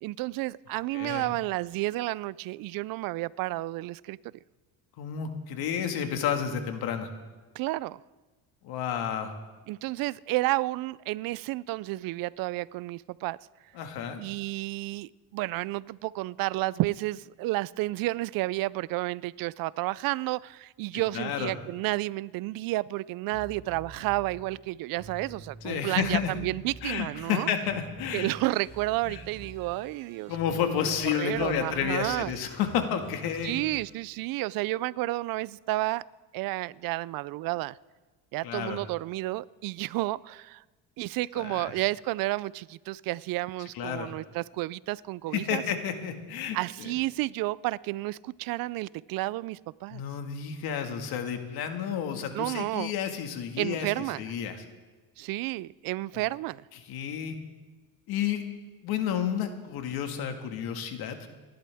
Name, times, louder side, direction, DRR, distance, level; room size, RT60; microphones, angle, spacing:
voice 1, 0.0-4.2 7.5-8.0 9.7-13.4 14.2-27.5 28.1-32.3 33.4-36.0 36.3-37.8 38.3-40.6 41.0-45.6 46.5-50.0 52.3-52.9 53.6-54.3 55.2-56.6, right 19 dB, 60° right, 0.5 m, -31 dB
voice 2, 0.9-1.3 5.0-7.1 8.6-9.3 13.8-14.2 21.1-21.5 25.6-26.3 26.8-28.3 29.1-29.2 30.3-33.5 38.4-38.8 41.4-41.7 43.7-44.1 45.3-46.9 49.9-53.9 54.2-54.6 56.9-57.4 58.1-58.4 58.8-61.3, left 8 dB, 70° left, 1.9 m, -31 dB
sound 1, 23.3-24.4 24.9-27.3 27.6-33.9, right 2 dB, 45° right, 6.6 m, -47 dB
28.5 x 11.5 x 3.5 m
cardioid pair, 110°, 39 cm